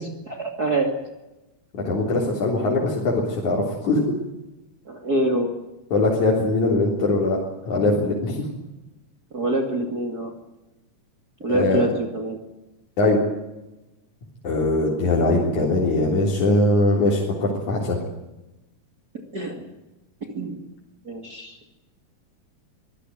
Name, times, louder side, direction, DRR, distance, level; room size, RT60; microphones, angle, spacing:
voice 1, 0.3-0.9 4.9-5.5 9.3-10.3 11.4-12.4 19.3-19.7 20.3-20.7 21.0-21.7, right 1 dB, 30° right, 2 dB, 2.6 m, -25 dB
voice 2, 1.7-4.0 5.9-7.4 7.7-8.4 11.5-11.8 13.0-13.2 14.4-18.0, left 2 dB, 60° left, -3 dB, 5.1 m, -21 dB
24.0 x 15.0 x 9.3 m, 0.99 s
omnidirectional pair, 3.8 m